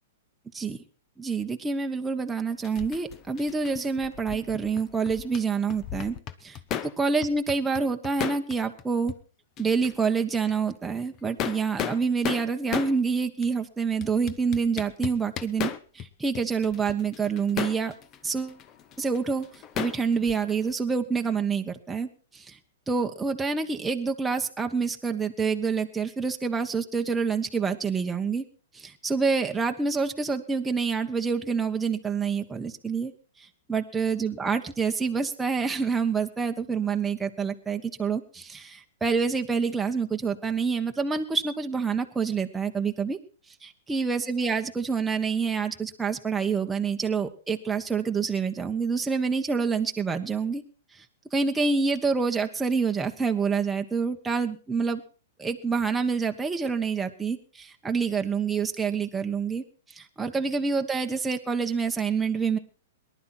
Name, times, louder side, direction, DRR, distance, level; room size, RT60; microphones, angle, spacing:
voice 1, 1.2-6.1 6.4-6.6 7.0-9.1 9.6-17.9 18.2-18.6 19.0-19.5 19.7-22.6 22.9-28.4 28.7-33.1 33.7-43.2 43.6-50.6 51.3-55.0 55.4-62.6, right 5 dB, 10° right, 4 dB, 1.2 m, -27 dB
sound 1, 2.6-5.4 5.7-7.0 7.2-8.8 9.1-9.2 9.6-10.1 10.5-10.6 11.1-13.0 13.4-13.5 14.0-16.1 16.3-20.7, left 9 dB, 30° left, 1.0 m, -35 dB
19.0 x 11.5 x 4.4 m, 0.37 s
hypercardioid pair, 135°, 0 cm